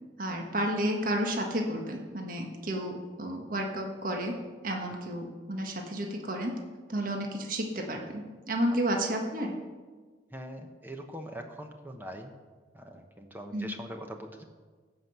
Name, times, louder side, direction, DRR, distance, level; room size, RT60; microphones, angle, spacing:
voice 1, 0.2-4.4 4.6-6.5 6.9-9.5 13.5-13.7, right 1 dB, 50° right, 2 dB, 1.6 m, -31 dB
voice 2, 10.3-12.3 12.7-14.4, equal, 10° right, 4 dB, 0.9 m, -42 dB
15.5 x 6.1 x 8.0 m, 1.4 s
head